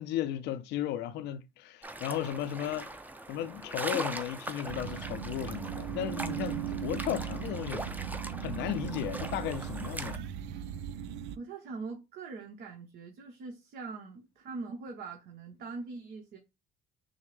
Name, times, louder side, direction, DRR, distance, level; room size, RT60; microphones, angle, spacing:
voice 1, 0.0-2.9 3.3-7.9 8.4-10.2, left 11 dB, 75° left, 0.5 m, -35 dB
sound 1, 1.8-10.2, right 2 dB, 10° right, 0.5 m, -41 dB
sound 2, 4.7-11.4, right 9 dB, 90° right, 0.4 m, -38 dB
voice 2, 11.3-16.4, right 4 dB, 70° right, 1.0 m, -42 dB
6.3 x 2.1 x 3.3 m
cardioid pair, 100°, 18 cm